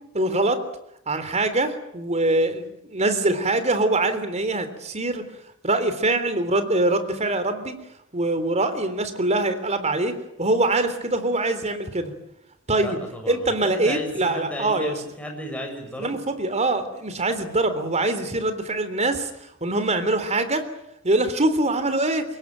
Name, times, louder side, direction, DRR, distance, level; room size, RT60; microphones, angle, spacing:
voice 1, 0.1-0.6 1.1-5.2 5.6-7.7 8.1-12.1 12.7-13.0 13.3-14.9 16.0-19.3 19.6-20.6 21.0-22.2, right 2 dB, 30° right, 10 dB, 3.4 m, -23 dB
voice 2, 12.7-16.2, equal, 5° left, 2 dB, 7.1 m, -34 dB
25.0 x 22.0 x 9.1 m, 0.79 s
head